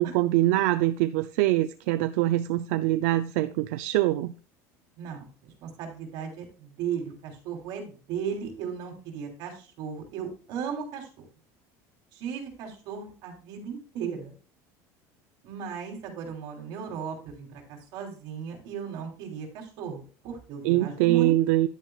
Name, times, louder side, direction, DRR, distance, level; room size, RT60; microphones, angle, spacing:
voice 1, 0.0-4.3 20.6-21.7, right 16 dB, 85° right, 11 dB, 0.5 m, -24 dB
voice 2, 5.0-11.2 12.1-14.4 15.4-21.3, right 7 dB, 60° right, 2 dB, 3.4 m, -36 dB
11.0 x 9.1 x 2.4 m, 0.38 s
cardioid pair, 155°, 8 cm